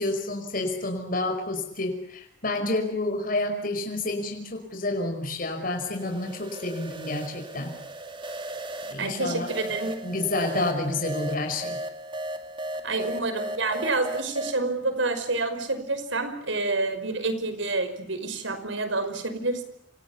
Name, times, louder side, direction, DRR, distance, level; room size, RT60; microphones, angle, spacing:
voice 1, 0.0-7.7 8.9-9.5 10.0-11.8, left 2 dB, 50° left, 5 dB, 5.4 m, -29 dB
sound 1, 5.5-14.6, right 1 dB, 25° right, 2.3 m, -36 dB
voice 2, 9.0-10.1 12.8-19.6, right 3 dB, 90° right, 10 dB, 5.4 m, -28 dB
29.0 x 27.5 x 7.2 m, 0.72 s
head